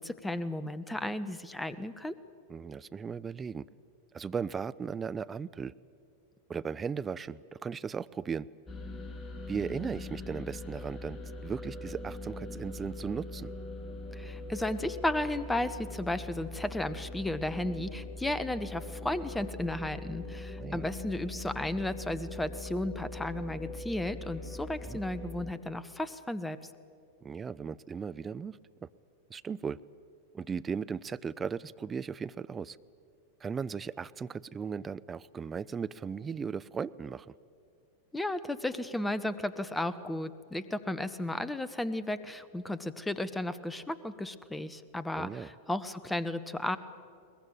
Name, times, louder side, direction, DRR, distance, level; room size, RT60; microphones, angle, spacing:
voice 1, 0.0-2.1 14.1-26.7 38.1-46.8, left 1 dB, 5° left, 14 dB, 1.1 m, -34 dB
voice 2, 2.5-3.7 4.1-5.7 6.5-8.5 9.5-13.5 20.6-20.9 24.8-25.0 27.2-28.9 29.3-29.8 30.3-32.8 33.4-37.3 45.1-45.5, right 6 dB, 20° right, 15 dB, 0.5 m, -37 dB
sound 1, 8.7-25.5, left 2 dB, 25° left, 2.0 m, -42 dB
22.0 x 20.5 x 9.0 m, 2.4 s
figure-of-eight pair, 90°, 0 cm